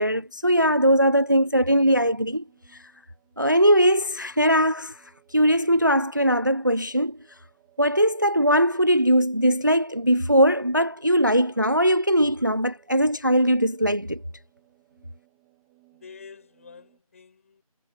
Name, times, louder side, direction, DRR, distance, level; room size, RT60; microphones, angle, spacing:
voice 1, 0.0-2.4 3.4-5.0 5.3-7.2 7.8-14.2, equal, 35° right, 0.4 m, -20 dB
sound 1, 1.6-17.0, right 22 dB, 5° right, 2.2 m, -63 dB
voice 2, 15.9-17.6, left 5 dB, 25° left, 6.7 m, -47 dB
figure-of-eight pair, 175°, 19 cm